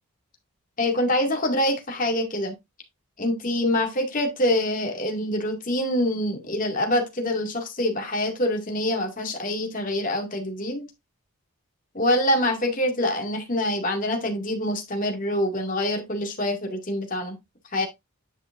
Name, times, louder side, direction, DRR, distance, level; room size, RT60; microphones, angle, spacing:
voice 1, 0.8-2.5 3.2-10.9 11.9-17.3 17.7-17.9, left 1 dB, 35° left, 2.2 m, -25 dB
10.0 x 5.6 x 2.6 m
head